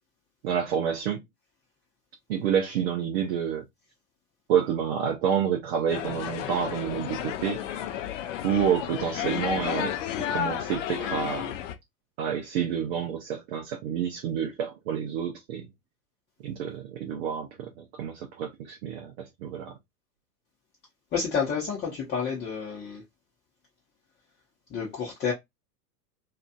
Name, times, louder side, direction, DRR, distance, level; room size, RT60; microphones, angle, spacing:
voice 1, 0.4-1.2 2.3-3.6 4.5-7.6 8.4-9.9 10.3-11.5 12.2-15.7 16.4-19.8, right 8 dB, 40° right, 0.6 m, -28 dB
sound 1, 5.9-11.7, left 10 dB, 50° left, 0.6 m, -32 dB
voice 2, 21.1-23.0 24.7-25.3, left 6 dB, 20° left, 0.9 m, -29 dB
2.9 x 2.5 x 2.3 m
figure-of-eight pair, 95°, 49 cm